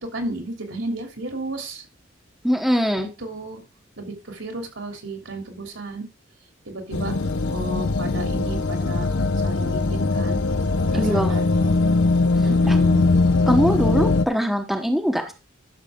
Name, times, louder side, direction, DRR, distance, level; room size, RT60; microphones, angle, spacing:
voice 1, 0.1-1.8 3.0-3.6 4.0-6.0 6.7-7.1 7.5-9.1 9.4-10.4 10.9-11.7 12.4-13.1 15.2-15.3, right 1 dB, 70° right, 4 dB, 2.9 m, -33 dB
voice 2, 2.4-3.1 10.9-11.4 12.7-12.8 13.5-15.3, equal, ahead, 4 dB, 1.0 m, -22 dB
sound 1, 6.9-14.2, left 3 dB, 75° left, 0.8 m, -21 dB
12.5 x 6.6 x 3.6 m, 0.29 s
head